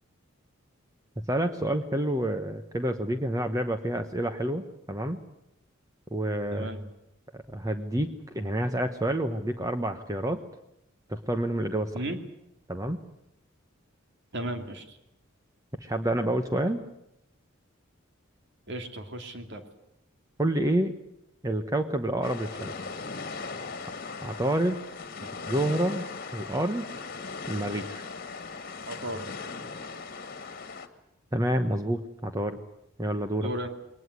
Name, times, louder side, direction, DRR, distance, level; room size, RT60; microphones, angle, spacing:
voice 1, 1.3-4.6 4.9-5.2 6.1-6.7 7.3-10.4 11.1-11.9 12.7-13.0 15.8-16.8 20.4-21.0 21.4-22.7 24.2-24.8 25.5-26.1 26.3-26.9 27.5-28.0 31.3-32.6 33.0-33.5, right 1 dB, 15° right, 7 dB, 1.1 m, -28 dB
voice 2, 6.5-6.9 11.9-12.2 14.3-15.0 18.7-19.6 25.2-25.3 28.9-29.2 33.4-33.7, right 1 dB, 60° right, 6 dB, 2.7 m, -35 dB
sound 1, 22.2-30.9, left 4 dB, 45° left, 2.1 m, -38 dB
21.5 x 20.0 x 9.5 m, 0.84 s
head